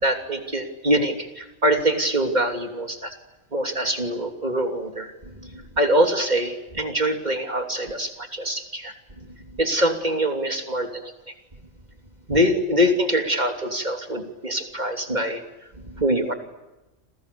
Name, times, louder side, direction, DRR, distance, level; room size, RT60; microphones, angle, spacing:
voice 1, 0.0-3.1 3.5-11.1 12.3-15.4 15.8-16.3, equal, 35° right, 5 dB, 3.2 m, -24 dB
28.5 x 28.0 x 7.0 m, 1.0 s
omnidirectional pair, 1.3 m